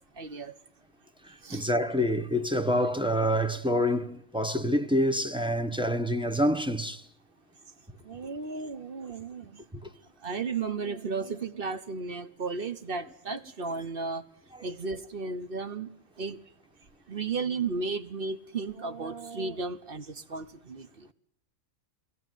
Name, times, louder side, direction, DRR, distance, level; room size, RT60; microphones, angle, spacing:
voice 1, 0.1-0.6 1.4-1.7 8.0-9.6 10.2-14.2 14.6-16.4 17.1-21.1, right 4 dB, 45° right, 1.3 m, -34 dB
voice 2, 1.2-7.0 9.7-9.9 14.5-14.6, equal, 5° right, 0.9 m, -27 dB
20.0 x 14.0 x 9.2 m
omnidirectional pair, 1.3 m